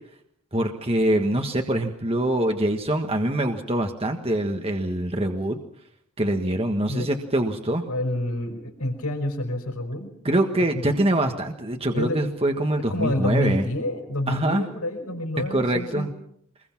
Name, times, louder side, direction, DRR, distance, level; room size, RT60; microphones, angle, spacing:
voice 1, 0.5-5.6 6.2-7.9 10.2-13.6 14.3-14.7 15.5-16.1, right 1 dB, 25° right, 4 dB, 1.5 m, -24 dB
voice 2, 7.9-10.1 10.7-10.9 11.9-12.2 12.9-16.1, left 1 dB, 80° left, 4 dB, 5.4 m, -28 dB
26.0 x 21.5 x 6.0 m, 0.70 s
head